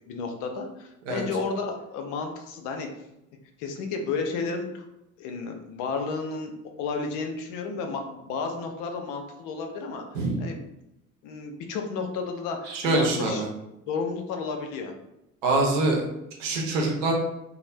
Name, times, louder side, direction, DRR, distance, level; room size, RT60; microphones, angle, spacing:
voice 1, 0.1-2.9 3.6-4.8 5.2-6.5 6.8-10.6 11.2-13.4 13.9-14.9, left 4 dB, 50° left, 4 dB, 0.6 m, -32 dB
voice 2, 12.7-13.5 15.4-16.0 16.4-17.1, right 2 dB, 60° right, 0 dB, 0.8 m, -24 dB
2.5 x 2.0 x 3.1 m, 0.85 s
figure-of-eight pair, 55°, 41 cm